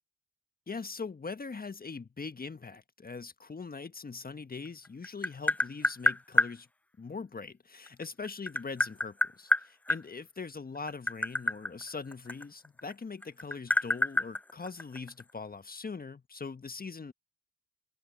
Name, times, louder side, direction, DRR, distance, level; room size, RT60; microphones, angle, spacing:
voice 1, 0.7-6.7 7.0-17.1, left 4 dB, 30° left, 1.5 m, -41 dB
Tap, 4.7-6.5 7.9-10.0 10.8-12.9 13.2-15.2, left 2 dB, 5° left, 0.3 m, -28 dB
hypercardioid pair, 45°, 29 cm